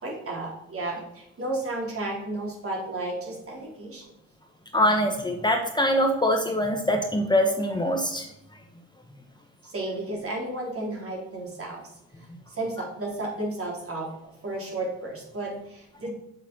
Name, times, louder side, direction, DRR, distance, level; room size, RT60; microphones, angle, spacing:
voice 1, 0.0-4.1 9.6-11.8 12.5-14.1 14.4-16.1, right 2 dB, 50° right, -2 dB, 4.1 m, -33 dB
voice 2, 4.7-8.2, equal, 15° left, 3 dB, 1.3 m, -23 dB
7.4 x 7.0 x 5.6 m, 0.82 s
cardioid pair, 90°, 30 cm